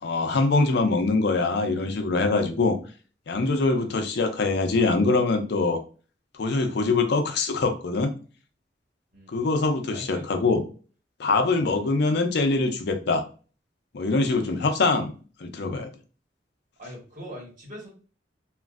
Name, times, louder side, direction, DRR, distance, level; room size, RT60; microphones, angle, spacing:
voice 1, 0.0-2.8 3.3-5.8 6.3-8.1 9.3-10.6 11.2-13.2 13.9-15.1 15.4-15.9, left 3 dB, 65° left, 6 dB, 0.5 m, -23 dB
voice 2, 9.1-9.5 9.9-10.5 11.4-11.7 16.8-17.9, equal, 45° right, -3 dB, 1.3 m, -43 dB
3.0 x 2.5 x 2.4 m, 0.37 s
head